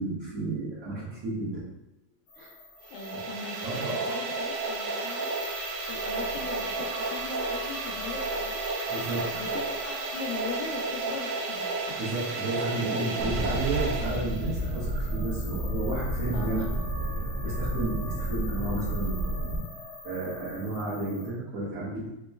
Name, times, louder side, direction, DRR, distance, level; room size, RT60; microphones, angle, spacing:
voice 1, 0.0-1.6 2.4-2.5 3.6-4.0 8.9-9.4 12.0-16.6 17.1-19.3 20.0-22.1, right 2 dB, 60° right, -11 dB, 1.8 m, -32 dB
sound 1, 2.3-21.3, left 2 dB, 65° left, 0.7 m, -44 dB
sound 2, 2.8-14.8, right 3 dB, 80° right, 2.0 m, -32 dB
voice 2, 2.9-5.3 5.9-8.6 9.3-11.7 16.3-16.5, left 5 dB, 85° left, -3 dB, 1.6 m, -40 dB
sound 3, 13.2-19.6, right 1 dB, 45° right, 0.9 m, -31 dB
5.4 x 2.9 x 2.3 m, 0.93 s
omnidirectional pair, 3.7 m